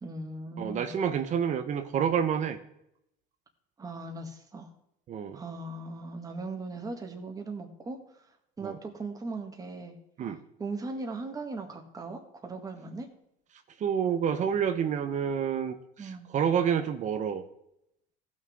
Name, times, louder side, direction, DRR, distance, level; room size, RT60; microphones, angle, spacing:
voice 1, 0.0-0.9 3.8-4.7 5.3-8.2 8.6-9.9 10.6-13.1 16.0-16.3, right 3 dB, 20° right, 3 dB, 1.8 m, -38 dB
voice 2, 0.6-2.6 5.1-5.4 8.6-8.8 10.2-10.4 13.8-17.4, right 8 dB, 40° right, 8 dB, 1.0 m, -28 dB
15.5 x 6.3 x 3.6 m, 0.78 s
supercardioid pair, 115°, 18 cm